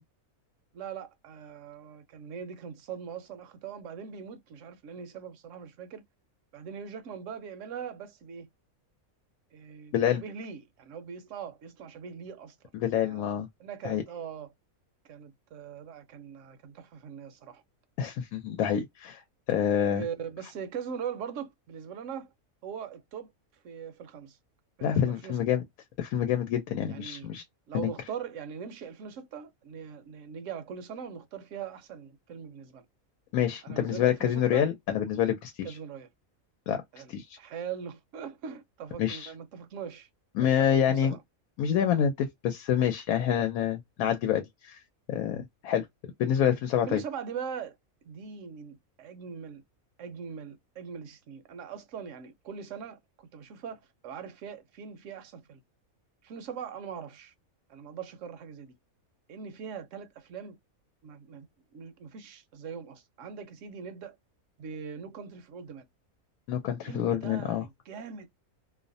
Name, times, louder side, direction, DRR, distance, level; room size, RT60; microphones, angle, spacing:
voice 1, 0.7-6.0 6.5-8.5 9.5-12.6 12.9-13.2 13.6-14.5 15.1-17.6 19.9-22.3 22.6-23.3 23.6-24.4 24.8-25.4 26.9-27.3 27.7-32.8 33.6-34.7 35.6-36.1 36.9-40.1 40.4-41.2 46.9-47.8 48.0-49.6 50.0-55.6 56.2-57.3 57.7-58.7 59.3-60.6 61.0-61.5 61.7-64.2 64.6-65.9 66.8-68.3, right 7 dB, 70° right, 0.9 m, -41 dB
voice 2, 12.7-13.5 13.8-14.0 18.0-19.2 19.5-20.0 24.8-25.6 26.0-27.4 27.7-27.9 33.3-35.8 36.7-36.8 37.1-37.4 39.0-39.3 40.4-41.2 41.6-44.8 45.1-45.9 46.2-47.0 66.5-67.6, left 9 dB, 90° left, 1.0 m, -27 dB
2.6 x 2.1 x 2.5 m
omnidirectional pair, 1.5 m